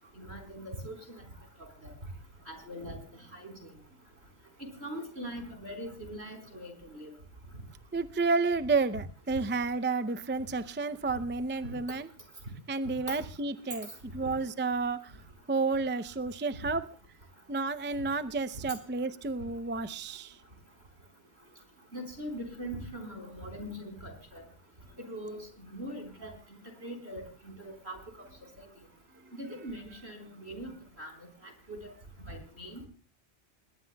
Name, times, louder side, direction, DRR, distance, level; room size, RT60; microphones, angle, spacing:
voice 1, 0.2-1.2 1.8-1.9 2.5-3.0 3.3-3.7 4.6-7.1 13.1-13.2 14.2-14.3 21.9-24.4 25.0-26.3 26.8-28.0 29.4-31.1 31.4-31.9 32.3-32.8, equal, 70° right, 4.7 m, -41 dB
voice 2, 7.9-12.1 12.7-15.1 15.5-16.9 17.5-20.4, right 3 dB, 15° right, 0.4 m, -31 dB
21.5 x 20.0 x 2.3 m
omnidirectional pair, 1.1 m